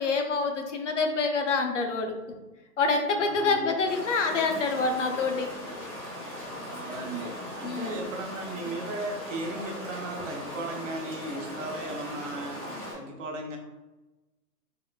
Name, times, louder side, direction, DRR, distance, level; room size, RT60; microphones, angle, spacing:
voice 1, 0.0-2.1 2.8-5.5 7.6-8.0, left 4 dB, 50° left, 4 dB, 0.5 m, -26 dB
voice 2, 3.1-3.7 6.2-12.6 12.9-13.6, right 2 dB, 50° right, 2 dB, 0.7 m, -36 dB
sound 1, 3.9-12.9, left 1 dB, ahead, 0.6 m, -39 dB
3.7 x 2.9 x 2.3 m, 1.1 s
hypercardioid pair, 135°, 48 cm